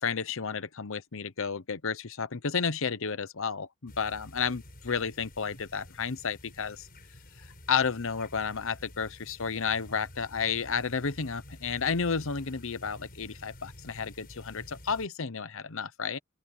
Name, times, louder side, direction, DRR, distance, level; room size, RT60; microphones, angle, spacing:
voice 1, 0.0-6.9 7.4-16.2, left 6 dB, 70° left, 0.9 m, -32 dB
sound 1, 3.9-15.1, left 1 dB, 45° left, 5.8 m, -50 dB
open air
head